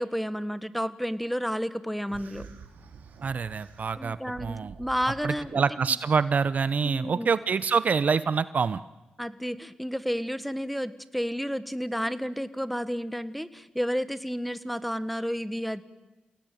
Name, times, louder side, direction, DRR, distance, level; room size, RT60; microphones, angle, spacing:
voice 1, 0.0-2.5 4.0-5.6 6.8-7.3 9.2-15.8, equal, ahead, 13 dB, 1.6 m, -31 dB
sound 1, 2.1-5.5, right 6 dB, 80° right, 3.2 m, -48 dB
voice 2, 3.2-4.7 5.2-8.8, right 5 dB, 55° right, 16 dB, 0.8 m, -26 dB
29.0 x 18.5 x 9.3 m, 1.1 s
cardioid pair, 65°, 3 cm